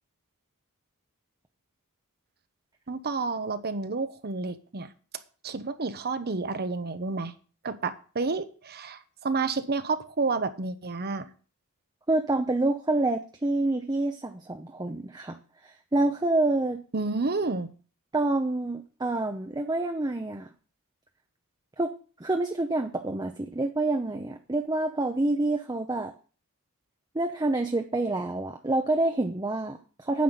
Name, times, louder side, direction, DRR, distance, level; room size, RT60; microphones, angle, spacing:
voice 1, 2.9-4.9 5.4-7.3 7.6-11.3 16.9-17.7, right 3 dB, 45° right, 11 dB, 0.9 m, -30 dB
voice 2, 12.1-15.4 15.6-16.8 18.1-20.5 21.8-21.9 22.2-26.1 27.1-30.2, right 2 dB, 20° right, 5 dB, 0.7 m, -27 dB
9.5 x 5.8 x 8.1 m, 0.38 s
head